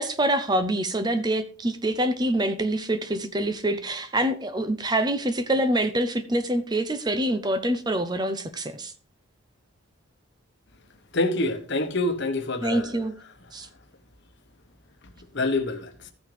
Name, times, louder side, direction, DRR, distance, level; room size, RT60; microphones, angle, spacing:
voice 1, 0.0-8.9 12.6-13.1 13.5-13.7, right 1 dB, 20° right, 0.6 m, -25 dB
voice 2, 11.1-13.1 15.3-16.1, left 2 dB, 50° left, 1.1 m, -26 dB
14.5 x 6.2 x 3.3 m
head